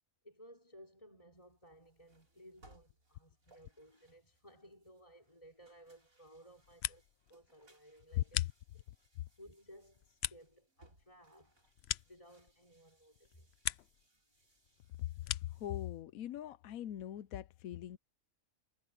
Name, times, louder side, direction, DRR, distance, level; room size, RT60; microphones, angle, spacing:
voice 1, 0.2-8.4 8.7-8.8 9.4-11.7 12.0-13.5 14.1-14.2, equal, 25° left, 4.3 m, -59 dB
sound 1, 1.3-16.0, right 1 dB, 70° right, 7.1 m, -70 dB
sound 2, 6.5-7.3 7.6-9.1 9.5-12.8 13.1-14.1 14.4-15.7, left 12 dB, 65° left, 0.7 m, -43 dB
voice 2, 15.4-18.0, left 13 dB, 85° left, 1.1 m, -40 dB
omnidirectional pair, 1.5 m